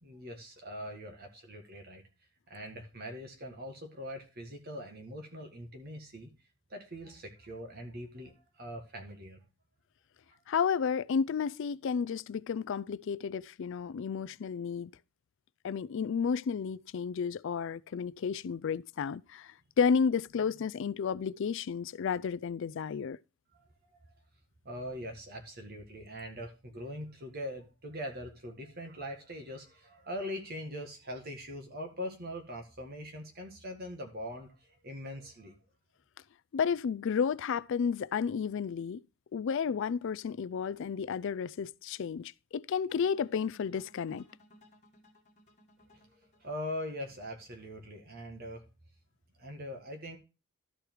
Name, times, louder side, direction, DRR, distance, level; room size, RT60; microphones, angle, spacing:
voice 1, 0.0-2.0 2.5-6.3 6.7-9.5 23.5-23.7 24.7-35.6 45.9-46.0 46.4-48.6 49.4-50.2, equal, 45° right, 1.7 m, -42 dB
voice 2, 10.5-14.9 15.6-23.2 36.5-39.0 39.3-44.3, left 6 dB, 60° left, 0.3 m, -32 dB
sound 1, 42.9-48.0, left 1 dB, 35° left, 1.5 m, -62 dB
13.0 x 4.9 x 4.6 m
head